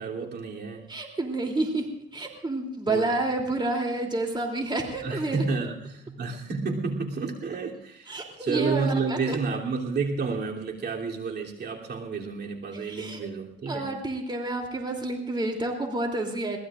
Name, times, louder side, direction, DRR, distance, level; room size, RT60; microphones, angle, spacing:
voice 1, 0.0-0.9 2.9-3.2 5.0-13.9, right 4 dB, 60° right, -1 dB, 3.1 m, -30 dB
voice 2, 0.9-1.9 2.1-5.4 8.1-9.4 12.8-13.3 13.7-16.6, right 2 dB, 25° right, 1 dB, 3.2 m, -29 dB
23.0 x 19.5 x 2.5 m, 0.78 s
cardioid pair, 90°, 20 cm